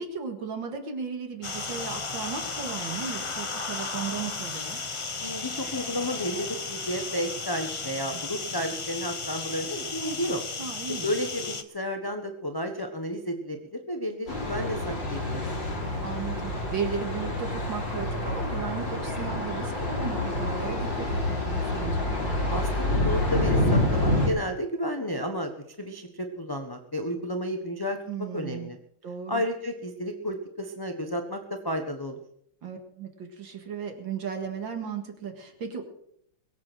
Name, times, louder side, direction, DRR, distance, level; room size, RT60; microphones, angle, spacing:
voice 1, 0.0-4.8 10.6-11.1 16.0-22.0 28.1-28.7 29.0-29.4 32.6-35.8, right 6 dB, 70° right, 4 dB, 2.5 m, -35 dB
sound 1, 1.4-11.6, left 4 dB, 45° left, 0.4 m, -34 dB
voice 2, 5.2-10.4 11.0-13.6 13.9-15.4 22.5-25.5 25.8-28.0 28.3-28.8 29.3-32.2, equal, 15° left, 4 dB, 0.9 m, -32 dB
Thunder, 14.3-24.3, left 1 dB, 60° left, 4.8 m, -27 dB
22.0 x 8.2 x 6.3 m, 0.72 s
omnidirectional pair, 2.2 m